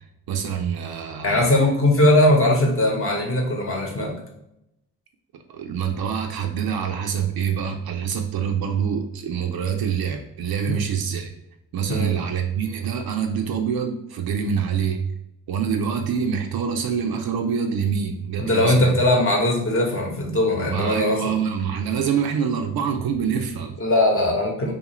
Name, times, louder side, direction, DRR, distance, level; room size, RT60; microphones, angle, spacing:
voice 1, 0.3-1.5 5.3-11.3 11.7-15.0 15.5-18.9 20.7-23.8, right 7 dB, 60° right, 5 dB, 0.5 m, -25 dB
voice 2, 1.2-4.2 10.7-10.8 11.9-12.1 18.4-21.2 23.8-24.7, left 1 dB, 30° left, 0 dB, 0.9 m, -20 dB
2.5 x 2.4 x 2.9 m, 0.83 s
supercardioid pair, 50°, 43 cm